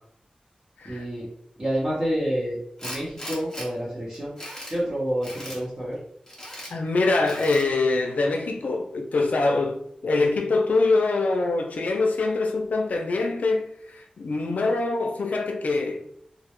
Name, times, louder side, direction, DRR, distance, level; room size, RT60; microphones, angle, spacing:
voice 1, 0.8-1.3 1.6-4.4 4.7-6.0, equal, 30° right, 0.6 m, -28 dB
Tools, 2.8-3.7 4.1-4.8 5.2-5.6 6.3-6.7 7.2-7.7, equal, 20° left, 0.8 m, -38 dB
voice 2, 6.7-16.0, left 3 dB, 90° left, 0.4 m, -24 dB
2.1 x 2.0 x 2.9 m
wide cardioid pair, 100°, 3 cm